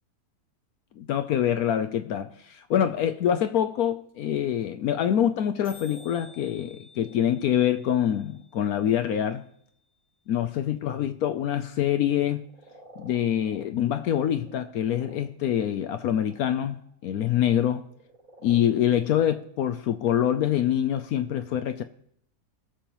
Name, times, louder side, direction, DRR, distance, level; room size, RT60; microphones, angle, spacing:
voice 1, 1.0-9.4 10.3-12.4 13.0-16.8 17.0-17.8 18.4-21.8, left 10 dB, 70° left, 1.0 m, -25 dB
sound 1, 1.4-1.8 2.3-2.4 4.3-4.9 5.3-6.5 6.8-7.7 8.1-8.4 9.4-9.5 12.3-13.8 14.3-15.2 15.9-16.5 16.8-18.6 19.2-19.4, right 1 dB, 25° right, 4.7 m, -52 dB
sound 2, 3.8-4.4 4.6-4.7 4.9-5.1 5.4-5.5 5.6-9.6, left 4 dB, 15° left, 4.5 m, -53 dB
21.0 x 7.1 x 3.0 m
omnidirectional pair, 1.7 m